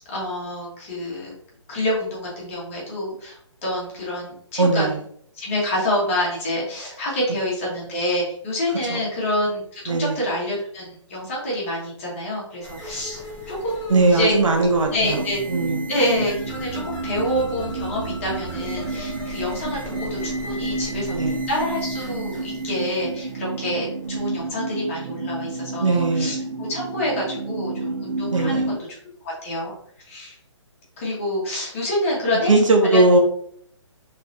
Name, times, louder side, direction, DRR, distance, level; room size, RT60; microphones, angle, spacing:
voice 1, 0.1-1.3 1.7-4.9 5.4-13.2 13.5-14.4 14.9-15.4 15.9-21.2 21.5-29.0 29.2-29.7 30.0-30.4 31.0-32.5 32.9-33.0, left 1 dB, 25° left, -5 dB, 1.3 m, -27 dB
voice 2, 4.6-5.0 8.9-9.0 9.9-10.2 13.9-15.2 15.5-15.9 21.1-21.4 25.8-26.4 28.3-28.7 32.5-33.2, right 3 dB, 80° right, 3 dB, 1.1 m, -19 dB
sound 1, 12.6-24.5, equal, 5° left, 0.7 m, -38 dB
sound 2, 15.1-28.8, right 3 dB, 40° right, 0.4 m, -30 dB
4.6 x 3.3 x 2.6 m, 0.64 s
hypercardioid pair, 170°, 16 cm